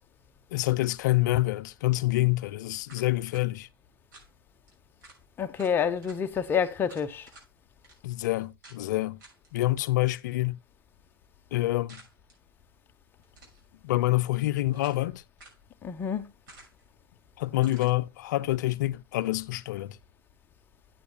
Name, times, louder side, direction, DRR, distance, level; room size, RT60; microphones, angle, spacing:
voice 1, 0.5-3.7 8.0-9.2 9.5-10.6 11.5-12.0 13.8-15.2 17.4-20.0, left 17 dB, 50° left, 0.6 m, -27 dB
sound 1, 2.8-3.4 4.1-4.3 4.7-4.8 5.0-5.2 5.5-6.2 6.9-7.5 7.8-8.0 8.6-8.8 9.2-9.5 11.9-12.4 13.2-13.6 14.3-15.0 15.4-15.6 16.5-16.9 17.6-18.0, right 2 dB, 55° right, 6.1 m, -52 dB
voice 2, 5.4-7.3 15.8-16.3, left 7 dB, 15° left, 0.8 m, -28 dB
11.5 x 8.9 x 2.2 m
hypercardioid pair, 135°, 12 cm